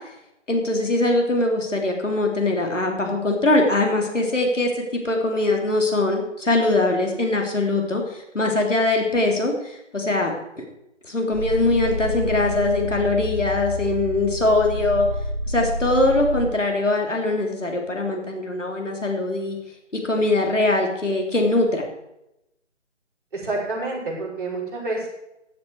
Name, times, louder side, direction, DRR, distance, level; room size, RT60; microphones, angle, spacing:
voice 1, 0.5-10.6 11.1-15.1 15.5-19.6 19.9-21.8, left 2 dB, 75° left, 1 dB, 3.5 m, -22 dB
sound 1, 11.3-16.5, left 1 dB, 5° left, 5.5 m, -29 dB
voice 2, 23.3-25.1, right 2 dB, 45° right, -5 dB, 6.3 m, -28 dB
16.0 x 9.4 x 4.8 m, 0.87 s
figure-of-eight pair, 155°, 37 cm